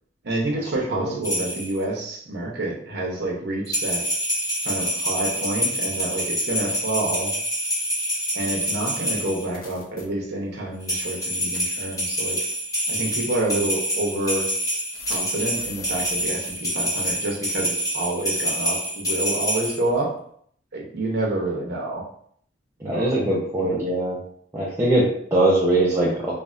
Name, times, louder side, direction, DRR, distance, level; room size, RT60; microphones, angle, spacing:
voice 1, 0.2-4.0 4.6-7.3 8.3-12.4 12.9-14.5 15.1-20.2 20.7-22.0 22.8-23.3 23.6-23.8, right 2 dB, 60° right, -2 dB, 0.8 m, -28 dB
sound 1, 1.2-1.8 3.7-9.5 10.8-19.8, equal, 20° left, 0.9 m, -26 dB
sound 2, 9.5-10.0 11.0-11.2 11.5-11.6 12.5-12.7 13.4-13.5 14.9-16.8 17.0-17.2, left 6 dB, 50° left, 0.5 m, -41 dB
voice 2, 22.8-24.2 24.5-26.3, right 1 dB, 15° right, -7 dB, 0.5 m, -21 dB
3.3 x 2.1 x 2.5 m, 0.64 s
head